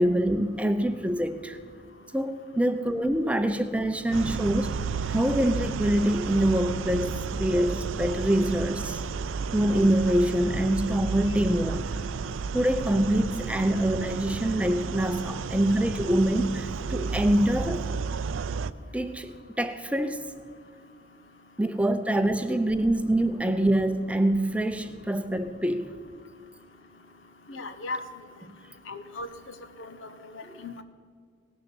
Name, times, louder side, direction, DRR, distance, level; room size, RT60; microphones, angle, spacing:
voice 1, 0.0-1.6 2.1-4.8 5.1-9.0 9.5-12.0 12.5-17.8 18.9-20.3 21.6-25.9 28.5-28.6 30.5-30.6, right 1 dB, 5° right, 9 dB, 0.5 m, -25 dB
sound 1, 4.1-18.7, right 5 dB, 85° right, 0.4 m, -32 dB
voice 2, 27.5-28.0 28.9-30.0 30.3-30.8, left 2 dB, 85° left, 10 dB, 1.0 m, -37 dB
18.0 x 6.8 x 6.9 m, 2.2 s
head